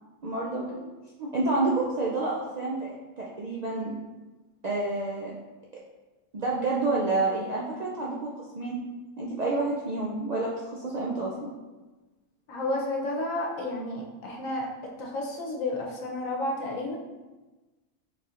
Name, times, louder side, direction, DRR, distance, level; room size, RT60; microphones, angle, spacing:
voice 1, 0.2-0.9 1.2-3.9 4.6-5.3 6.3-8.8 9.2-11.5, right 2 dB, 65° right, -5 dB, 0.4 m, -29 dB
voice 2, 12.5-14.7 15.0-17.0, left 1 dB, 80° left, -1 dB, 1.2 m, -31 dB
4.1 x 4.1 x 2.5 m, 1.2 s
omnidirectional pair, 1.4 m